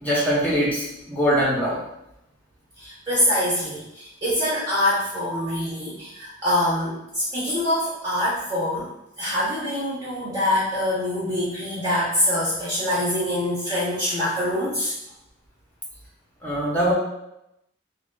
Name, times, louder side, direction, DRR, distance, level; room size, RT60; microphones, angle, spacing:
voice 1, 0.0-1.8 5.3-5.5 16.4-16.9, equal, 10° left, -6 dB, 1.0 m, -22 dB
voice 2, 2.8-8.9 9.2-14.9, left 1 dB, 15° right, -9 dB, 1.0 m, -24 dB
3.5 x 2.4 x 3.7 m, 0.84 s
head